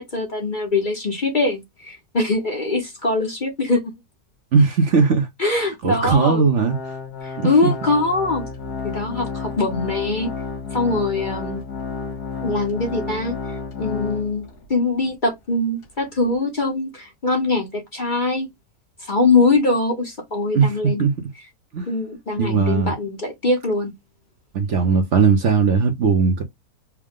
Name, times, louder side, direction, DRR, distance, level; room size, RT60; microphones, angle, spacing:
voice 1, 0.0-3.9 5.4-6.5 7.2-8.4 8.8-10.3 10.7-11.6 12.4-18.5 19.0-21.1 21.9-23.9, left 3 dB, 35° left, 0.9 m, -22 dB
voice 2, 4.5-5.3 5.8-6.8 7.4-7.7 20.5-20.7 21.0-21.1 21.7-21.9 22.4-22.9 24.5-26.4, right 5 dB, 55° right, 1.0 m, -18 dB
Organ, 6.6-14.7 15.1-15.2 15.8-15.9, left 4 dB, 70° left, 2.2 m, -31 dB
4.7 x 2.2 x 3.6 m
omnidirectional pair, 1.7 m